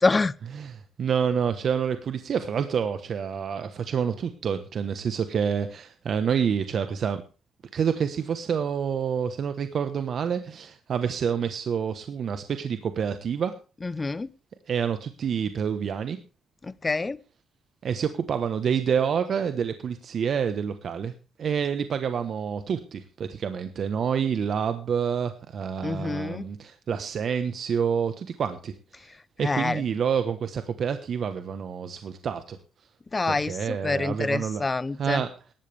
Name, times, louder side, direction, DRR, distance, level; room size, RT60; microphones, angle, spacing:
voice 1, 0.0-0.3 13.8-14.3 16.6-17.2 25.8-26.5 29.4-29.8 33.1-35.2, left 3 dB, 25° left, 19 dB, 0.7 m, -26 dB
voice 2, 0.6-7.2 7.7-13.5 14.7-16.2 17.8-21.1 21.4-28.7 29.4-32.6 33.3-34.7 35.0-35.3, right 7 dB, 60° right, 9 dB, 1.2 m, -28 dB
17.5 x 13.5 x 3.5 m, 0.34 s
supercardioid pair, 70°, 0 cm